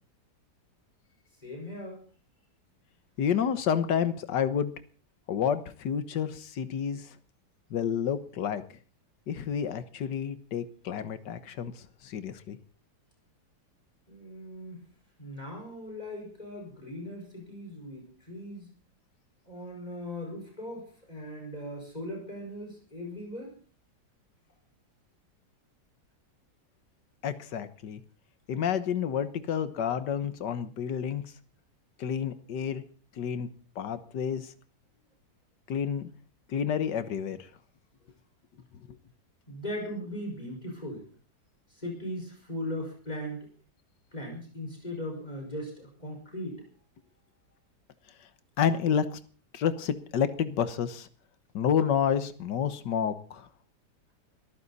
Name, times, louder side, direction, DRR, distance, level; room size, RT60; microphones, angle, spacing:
voice 1, 1.4-2.0 14.1-14.8 15.2-18.7 19.5-23.5 39.5-41.1 41.7-43.5 44.1-46.6, left 1 dB, 25° left, 1 dB, 5.5 m, -39 dB
voice 2, 3.2-4.7 5.3-7.1 7.7-8.6 9.3-12.6 27.2-28.0 28.5-31.3 32.0-32.8 33.2-33.5 33.8-34.5 35.7-36.1 36.5-37.5 48.6-49.2 49.5-51.1 51.5-53.5, left 8 dB, 85° left, 12 dB, 1.8 m, -29 dB
21.5 x 14.5 x 4.2 m, 0.41 s
omnidirectional pair, 1.8 m